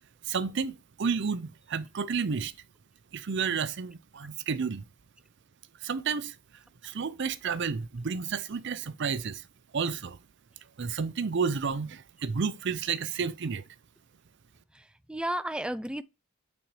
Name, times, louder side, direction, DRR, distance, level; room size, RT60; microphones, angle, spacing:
voice 1, 0.3-2.5 3.1-4.8 5.8-6.3 6.8-9.4 9.7-10.2 10.8-13.6, right 5 dB, 60° right, 0.5 m, -31 dB
voice 2, 14.7-16.0, right 1 dB, 5° right, 0.4 m, -33 dB
9.0 x 4.2 x 3.2 m
head